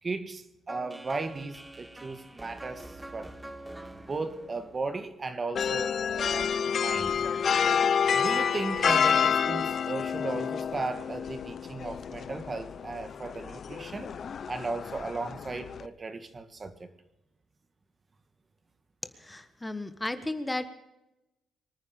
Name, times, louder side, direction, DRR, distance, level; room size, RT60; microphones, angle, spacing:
voice 1, 0.0-3.3 3.9-6.5 6.8-7.2 8.1-14.2 14.5-16.9, right 3 dB, 30° right, 1.8 m, -36 dB
sound 1, 0.7-5.7, right 1 dB, 10° right, 1.5 m, -46 dB
sound 2, 5.6-15.9, left 7 dB, 50° left, 0.7 m, -29 dB
voice 2, 19.1-20.7, left 2 dB, 15° left, 1.3 m, -34 dB
25.0 x 9.5 x 5.2 m
cardioid pair, 90°, 0 cm